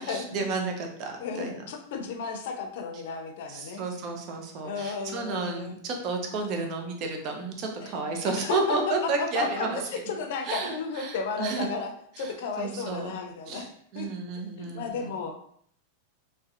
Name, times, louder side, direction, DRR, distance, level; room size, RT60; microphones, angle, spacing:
voice 1, 0.0-1.6 3.5-9.8 10.5-11.7 12.2-12.3 12.6-13.1 13.5-13.7 13.9-15.1, right 3 dB, 45° right, 3 dB, 0.5 m, -31 dB
voice 2, 1.2-3.8 4.6-5.8 7.8-7.9 8.4-9.7 9.9-13.7 13.9-14.1 14.6-15.3, left 5 dB, 65° left, 5 dB, 0.5 m, -33 dB
2.7 x 2.1 x 2.4 m, 0.64 s
hypercardioid pair, 125°, 0 cm